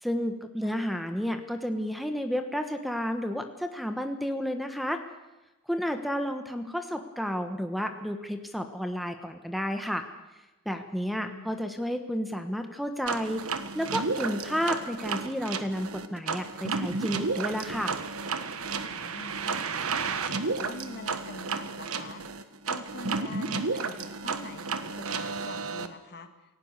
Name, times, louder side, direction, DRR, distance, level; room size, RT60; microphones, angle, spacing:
voice 1, 0.0-5.0 5.7-10.0 10.6-13.4 13.7-17.9, equal, ahead, 7 dB, 1.3 m, -31 dB
voice 2, 11.1-11.6 18.9-19.7 20.2-22.2 22.7-26.3, left 2 dB, 50° left, 8 dB, 1.9 m, -44 dB
sound 1, 13.1-25.9, right 4 dB, 65° right, 1.4 m, -32 dB
28.0 x 17.5 x 6.7 m, 1.1 s
head